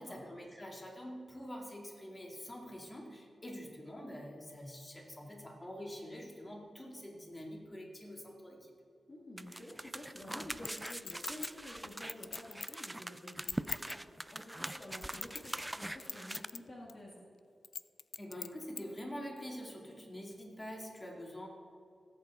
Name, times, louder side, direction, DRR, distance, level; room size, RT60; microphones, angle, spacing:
voice 1, 0.0-8.7 18.2-21.5, equal, 25° left, -1 dB, 2.2 m, -46 dB
voice 2, 9.1-17.2, left 1 dB, 40° left, -4 dB, 1.7 m, -50 dB
sound 1, 9.4-16.4, right 1 dB, 10° right, 0.3 m, -43 dB
Chink clink, 10.6-12.8 13.3-13.9 14.6-15.7 16.0-16.6 16.9-17.0 17.6-18.8 19.4-19.5, left 6 dB, 75° left, 0.3 m, -42 dB
17.5 x 8.3 x 3.6 m, 2.5 s
wide cardioid pair, 85°, 0 cm